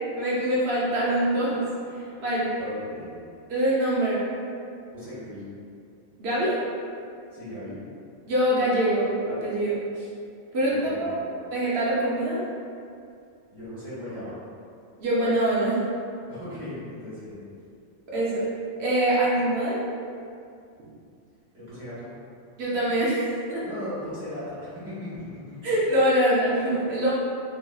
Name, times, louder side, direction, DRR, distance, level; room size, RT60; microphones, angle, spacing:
voice 1, 0.1-1.6 1.9-2.5 3.5-4.2 6.2-6.6 8.3-10.1 10.5-11.2 11.5-12.4 15.0-15.8 18.1-18.4 18.8-19.8 22.6-23.6 25.6-27.1, right 1 dB, 60° right, -7 dB, 0.8 m, -24 dB
voice 2, 2.6-3.2 4.9-5.4 7.3-7.8 10.6-11.3 13.5-14.4 16.3-17.4 21.5-22.1 23.6-25.7, left 1 dB, 25° right, -12 dB, 1.4 m, -37 dB
3.0 x 2.6 x 2.2 m, 2.4 s
omnidirectional pair, 1.4 m